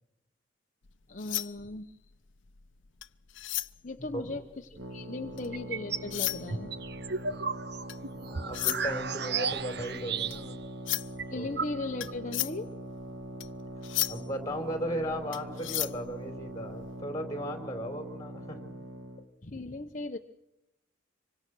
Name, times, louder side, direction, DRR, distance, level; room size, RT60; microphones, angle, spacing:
sound 1, 0.8-5.6 6.0-17.0, left 16 dB, 80° left, 0.8 m, -36 dB
voice 1, 1.1-2.0 3.8-7.2 11.3-12.7 19.4-20.2, left 2 dB, 40° left, 4 dB, 1.0 m, -38 dB
sound 2, 4.8-19.3, right 1 dB, 80° right, 2.3 m, -43 dB
voice 2, 5.0-5.3 8.1-10.6 11.4-11.5 14.1-18.6, equal, 20° left, 6 dB, 4.3 m, -36 dB
sound 3, 5.5-6.1 6.5-10.7 10.9-11.0 11.2-12.2, right 5 dB, 60° right, 0.9 m, -34 dB
26.0 x 24.5 x 6.3 m, 0.85 s
head